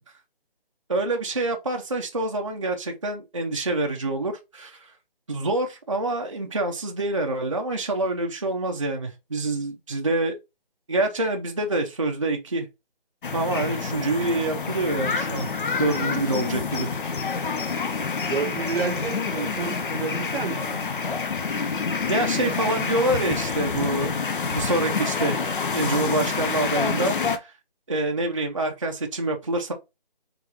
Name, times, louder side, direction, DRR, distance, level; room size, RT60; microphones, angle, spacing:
voice 1, 0.9-4.8 5.3-10.4 10.9-12.7 13.3-15.5 15.8-16.9 22.1-24.1 24.4-25.4 25.7-27.5 27.9-29.7, right 2 dB, 35° right, 0.5 m, -26 dB
sound 1, 13.2-27.4, left 5 dB, 60° left, 0.7 m, -27 dB
voice 2, 18.3-20.8, right 5 dB, 80° right, 0.8 m, -30 dB
3.7 x 3.0 x 3.4 m
figure-of-eight pair, 170°, 29 cm